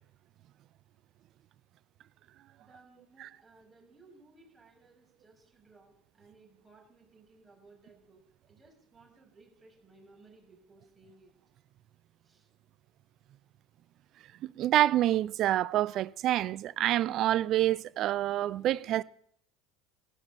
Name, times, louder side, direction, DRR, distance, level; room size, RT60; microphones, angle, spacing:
voice 1, 2.6-8.2 8.5-11.3 12.2-12.5, right 3 dB, 10° right, 6.8 m, -59 dB
voice 2, 14.4-19.0, right 13 dB, 50° right, 0.4 m, -27 dB
16.0 x 13.0 x 4.3 m
figure-of-eight pair, 70°, 0 cm